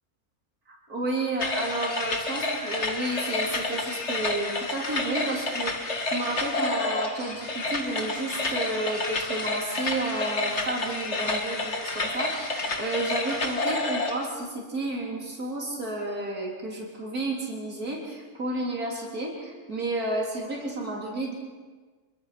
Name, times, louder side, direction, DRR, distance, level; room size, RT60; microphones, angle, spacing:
voice 1, 0.7-21.3, right 2 dB, 80° right, -2 dB, 4.1 m, -31 dB
sound 1, 1.4-14.3, left 2 dB, 50° left, 2.4 m, -29 dB
27.0 x 23.5 x 5.9 m, 1.4 s
omnidirectional pair, 1.6 m